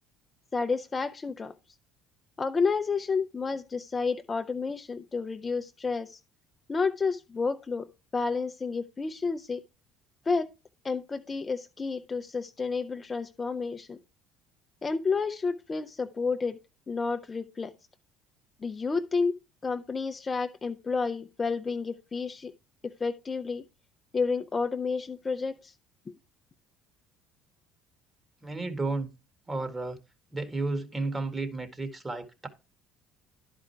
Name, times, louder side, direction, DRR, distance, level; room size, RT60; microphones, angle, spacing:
voice 1, 0.5-1.5 2.4-6.2 6.7-7.9 8.1-9.6 10.3-10.5 10.8-14.0 14.8-16.6 16.9-17.7 18.6-19.3 19.6-22.5 22.8-23.6 24.1-25.7 26.1-26.2, left 4 dB, 30° left, 0.7 m, -30 dB
voice 2, 28.4-29.1 29.5-30.0 30.3-32.5, right 3 dB, 20° right, 1.8 m, -32 dB
11.0 x 5.0 x 4.5 m
hypercardioid pair, 75°, 0 cm